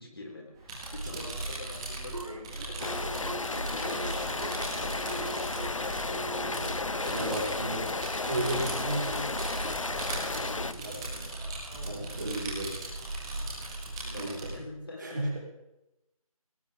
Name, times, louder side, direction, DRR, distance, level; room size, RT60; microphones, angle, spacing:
voice 1, 0.0-5.3 6.0-7.6 8.2-8.9 9.4-12.1 13.7-15.2, left 2 dB, 40° left, 1 dB, 4.2 m, -46 dB
sound 1, 0.6-14.5, right 2 dB, 10° right, 1.9 m, -38 dB
sound 2, 2.1-6.9, right 3 dB, 75° right, 5.2 m, -42 dB
Rain, 2.8-10.7, left 3 dB, 60° left, 0.9 m, -33 dB
voice 2, 7.1-7.9 8.3-9.3 10.8-11.0 11.8-12.8 14.2-14.5 15.0-15.4, right 1 dB, 35° right, -1 dB, 4.8 m, -33 dB
21.0 x 18.5 x 3.7 m, 0.91 s
figure-of-eight pair, 175°, 19 cm